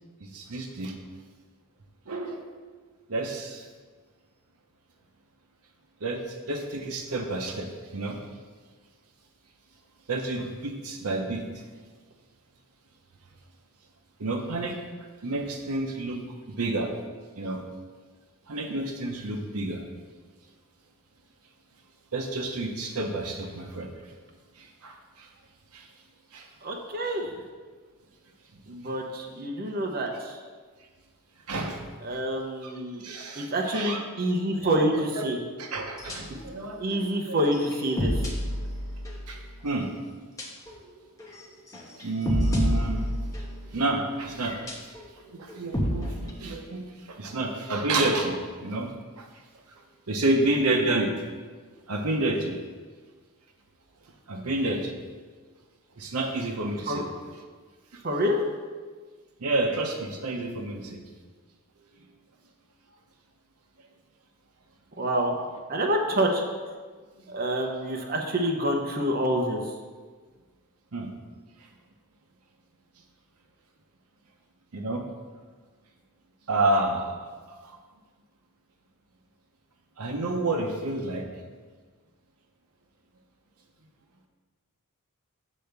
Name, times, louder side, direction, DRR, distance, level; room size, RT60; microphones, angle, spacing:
voice 1, 0.2-0.9 2.1-2.5 3.1-3.7 6.0-8.2 10.1-11.6 14.2-14.8 15.2-16.9 17.4-17.6 18.5-19.8 22.1-23.9 24.6-25.3 25.7-25.9 26.3-26.5 28.8-28.9 31.5-31.8 32.1-32.2 32.6-32.7 33.0-34.0 34.6-35.3 35.6-36.9 37.2-37.4 39.3-39.9 42.0-43.0 43.7-45.0 45.3-48.9 49.2-49.3 50.1-51.1 51.9-52.6 54.3-55.0 56.0-57.1 57.9-58.0 59.4-61.0 70.9-71.1 74.7-75.1 76.5-77.8 80.0-81.3, right 2 dB, 75° right, 3 dB, 0.8 m, -30 dB
voice 2, 26.6-27.3 28.7-30.4 32.0-33.0 33.4-35.4 36.8-38.1 56.9-57.0 58.0-58.4 65.0-65.3 65.7-66.4 67.3-69.6, right 1 dB, 40° right, 1 dB, 0.9 m, -27 dB
sound 1, 36.0-36.5 36.9-37.0 37.4-39.4 40.4-40.8 41.2-41.4 41.7-43.7 44.4-45.1 45.5-46.3, equal, 15° left, 1.1 m, -29 dB
8.4 x 3.4 x 6.7 m, 1.5 s
head